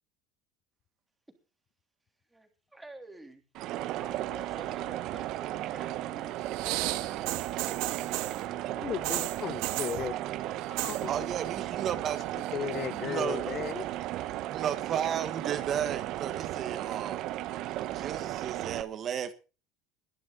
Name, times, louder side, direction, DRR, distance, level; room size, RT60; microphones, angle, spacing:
voice 1, 2.3-3.4 4.0-6.5, right 2 dB, 5° right, 3.2 m, -50 dB
sound 1, 3.5-18.8, right 14 dB, 50° right, 1.0 m, -35 dB
sound 2, 6.5-8.4 9.0-10.0 10.6-11.0 11.3-11.8 12.1-12.9 13.7-13.8, right 17 dB, 70° right, 1.8 m, -34 dB
voice 2, 8.8-10.1 10.8-11.1 12.5-13.9, left 9 dB, 30° left, 0.7 m, -35 dB
voice 3, 11.1-12.2 13.0-13.6 14.5-17.2 17.9-19.3, right 9 dB, 35° right, 1.3 m, -33 dB
20.5 x 11.5 x 4.0 m
cardioid pair, 150°, 0 cm